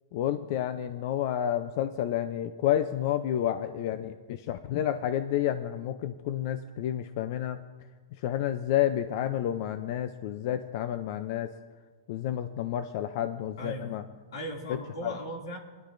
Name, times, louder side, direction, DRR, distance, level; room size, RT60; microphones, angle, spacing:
voice 1, 0.1-7.6 8.2-11.5 12.1-14.0 15.0-15.1, left 11 dB, 45° left, 10 dB, 0.4 m, -30 dB
voice 2, 13.6-14.0 14.3-15.6, equal, 85° left, 0 dB, 2.5 m, -38 dB
20.5 x 11.5 x 2.6 m, 1.4 s
supercardioid pair, 160°, 2 cm